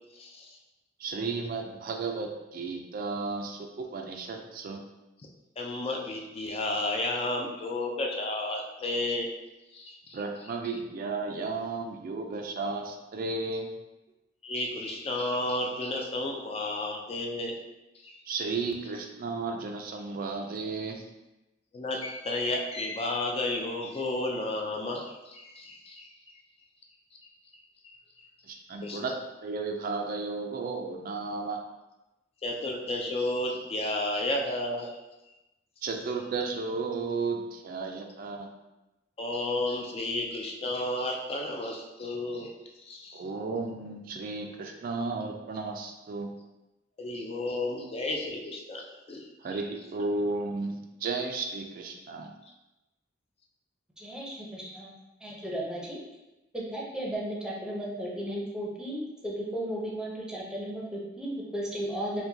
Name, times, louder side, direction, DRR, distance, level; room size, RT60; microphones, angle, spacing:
voice 1, 0.1-0.6 5.6-9.3 9.7-10.2 14.4-17.6 17.9-18.2 21.7-26.1 27.8-28.3 28.8-29.0 32.4-34.9 39.2-42.5 42.8-43.2 47.0-49.6, left 2 dB, 30° left, 0 dB, 0.3 m, -32 dB
voice 2, 1.0-4.8 10.1-13.7 18.3-21.0 28.4-29.2 29.4-31.6 35.8-38.5 43.1-46.3 49.4-52.3, right 3 dB, 50° right, 3 dB, 0.3 m, -33 dB
voice 3, 54.0-54.9 55.2-56.0 56.5-62.2, right 1 dB, 5° right, -4 dB, 0.6 m, -35 dB
4.6 x 2.2 x 2.7 m, 1.0 s
head